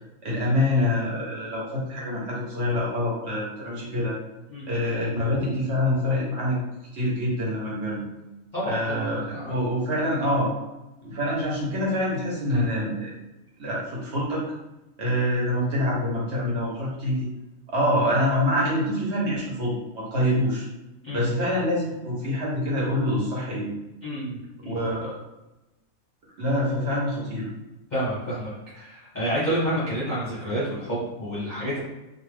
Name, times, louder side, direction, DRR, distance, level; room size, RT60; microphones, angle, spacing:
voice 1, 0.2-4.2 4.7-6.6 6.9-8.1 8.6-10.5 11.0-13.1 13.6-14.5 15.0-17.3 17.7-20.7 21.1-23.7 24.6-25.2 26.4-27.5, left 1 dB, 55° right, -5 dB, 1.0 m, -25 dB
voice 2, 8.5-9.5 21.0-21.2 24.0-24.4 24.6-24.8 27.9-31.8, equal, 40° left, -10 dB, 0.8 m, -29 dB
2.4 x 2.3 x 3.2 m, 0.99 s
omnidirectional pair, 1.5 m